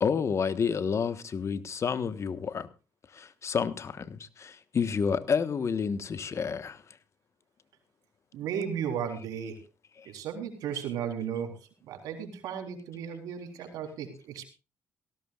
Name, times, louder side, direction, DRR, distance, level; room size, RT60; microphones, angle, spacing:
voice 1, 0.0-2.7 3.1-6.8 10.7-10.8, left 6 dB, 50° left, 1.3 m, -29 dB
voice 2, 8.3-9.6 10.1-14.4, right 8 dB, 90° right, 3.8 m, -35 dB
18.5 x 16.5 x 2.4 m
cardioid pair, 75°, 6 cm